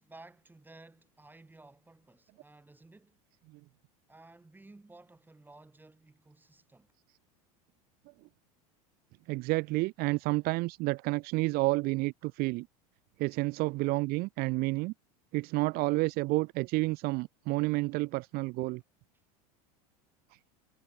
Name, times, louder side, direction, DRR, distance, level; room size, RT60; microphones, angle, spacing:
voice 1, 0.0-3.2 4.1-6.9, right 2 dB, 10° right, 5.4 m, -55 dB
voice 2, 9.3-12.7 13.2-14.9 15.3-18.8, right 23 dB, 55° right, 0.8 m, -30 dB
hypercardioid pair, 95°, 19 cm